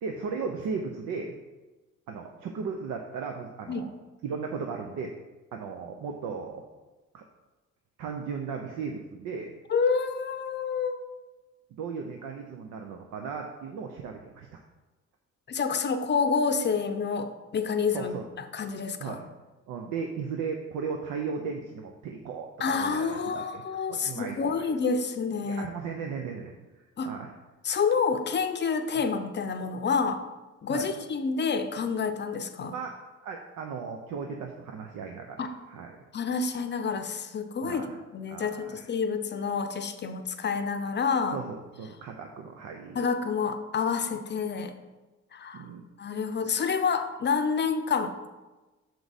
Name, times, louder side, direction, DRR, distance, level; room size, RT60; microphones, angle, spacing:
voice 1, 0.0-1.3 2.1-3.9 4.2-5.1 5.5-6.6 7.1-7.2 8.0-9.5 11.7-14.5 17.9-18.2 19.0-19.2 19.7-23.6 23.9-24.7 25.4-27.3 30.7-30.9 32.7-32.9 33.2-35.9 37.6-37.9 38.3-38.8 41.3-43.0 45.5-45.8, right 5 dB, 85° right, 3 dB, 0.6 m, -36 dB
voice 2, 9.7-11.0 15.5-18.1 18.5-19.2 22.6-25.7 27.0-27.1 27.6-30.2 30.6-32.7 35.4-35.5 36.1-37.8 38.1-41.4 42.9-44.7 45.3-45.7 46.0-48.3, left 5 dB, 35° left, 8 dB, 0.6 m, -28 dB
6.5 x 4.6 x 4.0 m, 1.2 s
cardioid pair, 90°, 30 cm